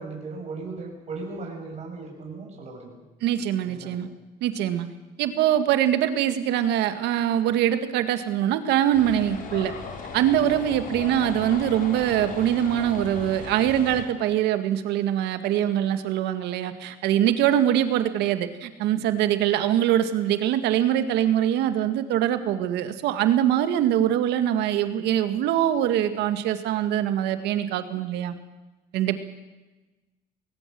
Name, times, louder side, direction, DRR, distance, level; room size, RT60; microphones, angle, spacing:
voice 1, 0.0-3.0 3.6-4.0, right 3 dB, 40° right, 0 dB, 6.5 m, -37 dB
voice 2, 3.2-4.1 4.4-4.9 5.2-9.7 10.1-28.3 28.9-29.2, right 11 dB, 85° right, 10 dB, 2.0 m, -23 dB
sound 1, 8.9-14.0, left 4 dB, 55° left, 5.3 m, -37 dB
21.5 x 19.5 x 7.8 m, 1.1 s
cardioid pair, 110°, 17 cm